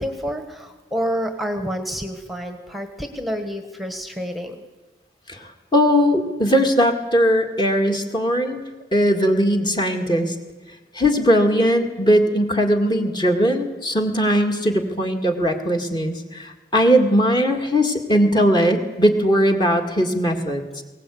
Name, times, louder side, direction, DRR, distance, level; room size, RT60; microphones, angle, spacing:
voice 1, 0.0-4.6, equal, ahead, 6 dB, 1.3 m, -28 dB
voice 2, 5.3-8.6 8.9-10.3 10.9-20.8, equal, 25° left, 3 dB, 2.0 m, -19 dB
21.5 x 18.5 x 8.5 m, 1.2 s
head